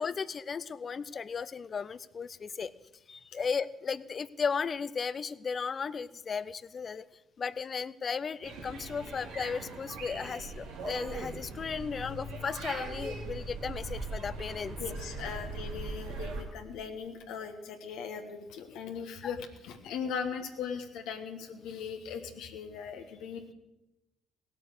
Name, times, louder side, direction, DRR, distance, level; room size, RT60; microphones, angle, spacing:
voice 1, 0.0-2.7 3.1-7.1 7.4-14.8 19.2-19.3, left 6 dB, 45° left, 18 dB, 0.6 m, -35 dB
sound 1, 8.4-16.4, right 3 dB, 85° right, 2.5 m, -40 dB
voice 2, 14.8-23.5, left 6 dB, 75° left, 5 dB, 1.3 m, -39 dB
17.0 x 8.3 x 6.6 m, 0.99 s
hypercardioid pair, 55°, 0 cm